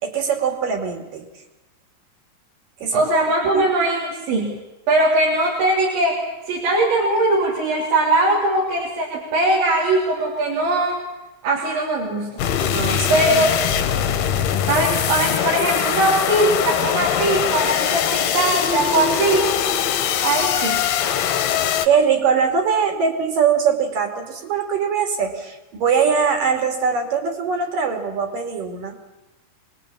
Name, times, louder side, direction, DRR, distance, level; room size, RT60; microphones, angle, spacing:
voice 1, 0.0-1.3 2.8-3.0 3.5-3.6 12.6-13.5 21.8-29.0, right 6 dB, 55° right, 5 dB, 4.1 m, -22 dB
voice 2, 2.9-4.6 4.9-11.0 11.4-12.4 13.1-13.6 14.7-19.5 20.2-20.8, right 2 dB, 90° right, -3 dB, 6.0 m, -20 dB
sound 1, 12.4-21.9, left 9 dB, 70° left, 3.0 m, -22 dB
26.0 x 20.5 x 8.7 m, 1.0 s
omnidirectional pair, 5.0 m